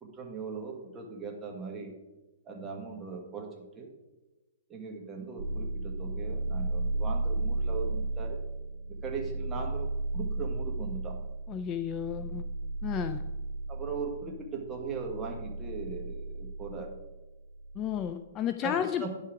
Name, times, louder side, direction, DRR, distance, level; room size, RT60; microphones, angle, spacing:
voice 1, 0.0-1.9 2.4-3.9 4.7-8.4 8.9-11.2 13.7-16.9 18.6-19.1, right 5 dB, 15° right, 1 dB, 1.5 m, -39 dB
sound 1, 5.4-18.1, right 2 dB, 75° right, 2.0 m, -34 dB
voice 2, 11.5-12.5 12.8-13.2 17.8-19.1, left 9 dB, 25° left, 9 dB, 0.4 m, -32 dB
10.5 x 5.7 x 4.9 m, 1.1 s
hypercardioid pair, 150°, 0 cm